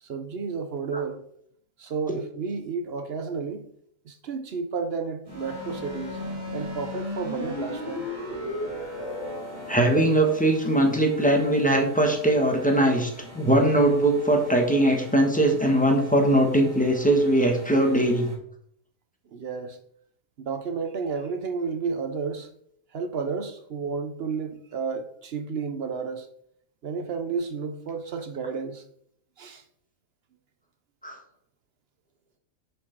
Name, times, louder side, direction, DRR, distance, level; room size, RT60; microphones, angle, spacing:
voice 1, 0.0-1.3 1.8-3.7 4.0-6.2 6.5-8.1 19.3-19.8 20.4-22.5 22.9-26.3 26.8-28.8 29.4-29.6, right 5 dB, 55° right, 0.7 m, -31 dB
sound 1, 5.2-18.3, left 1 dB, 30° right, 2.0 m, -38 dB
voice 2, 9.7-13.1 13.3-18.3 31.0-31.2, right 1 dB, 5° left, 1.0 m, -21 dB
6.5 x 5.6 x 4.5 m
omnidirectional pair, 1.6 m